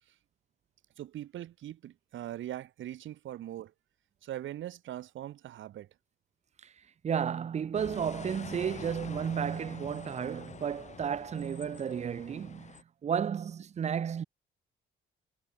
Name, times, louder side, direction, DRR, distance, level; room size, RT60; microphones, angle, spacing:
voice 1, 1.0-3.7 4.2-5.9, right 12 dB, 75° right, 2.5 m, -41 dB
voice 2, 7.0-14.2, right 8 dB, 35° right, 0.5 m, -33 dB
sound 1, 7.7-12.8, left 6 dB, 35° left, 1.2 m, -47 dB
cardioid pair, 90°, 20 cm